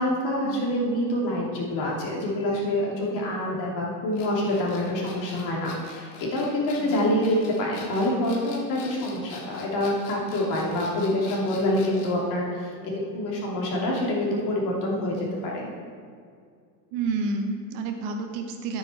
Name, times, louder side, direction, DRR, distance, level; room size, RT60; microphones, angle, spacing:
voice 1, 0.0-15.7, left 1 dB, 40° left, -3 dB, 3.1 m, -26 dB
sound 1, 4.1-12.2, left 5 dB, 75° left, 2.4 m, -44 dB
voice 2, 16.9-18.8, right 3 dB, 45° right, 4 dB, 1.1 m, -30 dB
11.0 x 9.0 x 4.5 m, 2.2 s
supercardioid pair, 145°, 47 cm